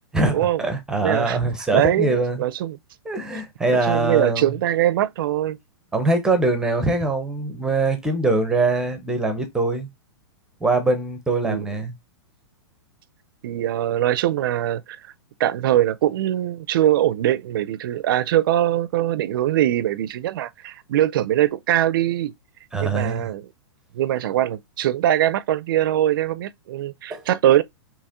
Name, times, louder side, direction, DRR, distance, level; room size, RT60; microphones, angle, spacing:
voice 1, 0.1-2.4 3.0-4.5 5.9-9.9 10.6-11.9 22.7-23.3 27.1-27.2, right 2 dB, 5° right, 0.7 m, -22 dB
voice 2, 1.0-1.4 1.7-2.8 3.8-5.6 11.4-11.7 13.4-15.0 15.4-22.3 22.8-23.5 23.9-27.6, right 12 dB, 55° right, 0.5 m, -22 dB
4.2 x 2.9 x 3.6 m
hypercardioid pair, 160°, 14 cm